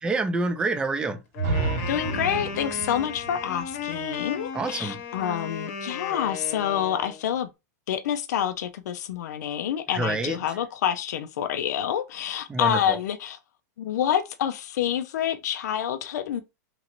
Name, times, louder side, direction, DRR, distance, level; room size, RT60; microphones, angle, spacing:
voice 1, 0.0-1.2 4.5-5.0 9.9-10.4 12.5-13.0, right 3 dB, 10° right, 0.4 m, -27 dB
Wind instrument woodwind instrument, 1.3-7.2, left 7 dB, 50° left, 0.9 m, -35 dB
sound 1, 1.4-5.2, right 4 dB, 40° right, 0.7 m, -32 dB
voice 2, 1.9-7.5 7.9-13.4 13.8-16.4, left 10 dB, 90° left, 0.4 m, -27 dB
3.0 x 2.5 x 2.9 m
supercardioid pair, 155°, 9 cm